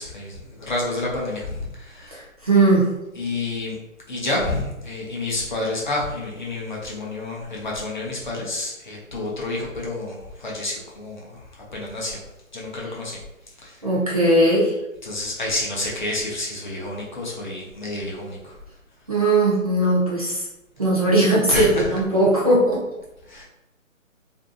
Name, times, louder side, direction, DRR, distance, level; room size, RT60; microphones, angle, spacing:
voice 1, 0.0-2.2 3.2-3.8 4.1-12.2 12.5-13.2 13.6-13.8 15.0-18.5 21.5-21.8 23.2-23.4, left 2 dB, 35° left, -4 dB, 0.6 m, -29 dB
voice 2, 2.1-2.9 13.8-14.8 19.1-20.5 20.8-22.8, right 1 dB, 30° right, -7 dB, 0.5 m, -19 dB
2.5 x 2.3 x 2.5 m, 0.96 s
figure-of-eight pair, 150°, 40 cm